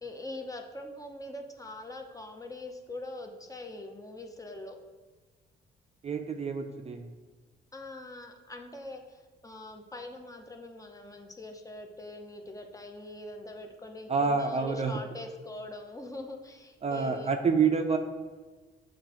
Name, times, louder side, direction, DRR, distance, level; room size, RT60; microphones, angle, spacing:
voice 1, 0.0-4.8 7.7-17.3, left 2 dB, 15° left, 3 dB, 0.5 m, -43 dB
voice 2, 6.0-7.1 14.1-14.9 16.8-18.0, right 5 dB, 35° right, 5 dB, 0.4 m, -27 dB
7.4 x 2.5 x 2.8 m, 1.3 s
cardioid pair, 90°, 20 cm